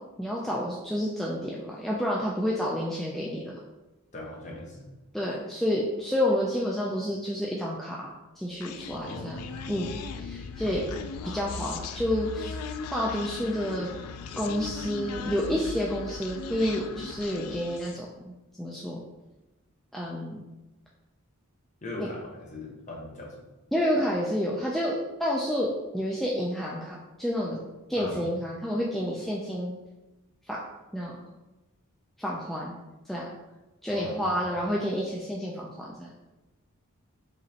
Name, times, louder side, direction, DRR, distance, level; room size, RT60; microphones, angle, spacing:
voice 1, 0.2-3.6 5.1-9.9 10.2-10.8 11.3-12.6 12.9-13.9 14.4-19.0 19.9-20.4 22.0-22.1 23.7-24.9 25.2-25.7 25.9-27.6 27.9-29.8 30.5-30.6 30.9-31.2 32.2-32.7 33.1-33.3 33.8-36.1, equal, ahead, -5 dB, 0.3 m, -29 dB
voice 2, 4.1-4.9 8.9-9.5 10.6-10.9 21.8-23.4 28.0-28.2 33.9-34.8, left 2 dB, 30° left, -2 dB, 0.8 m, -40 dB
Human voice, 8.6-18.1, left 5 dB, 85° left, 0.3 m, -38 dB
5.0 x 3.0 x 2.8 m, 1.0 s
head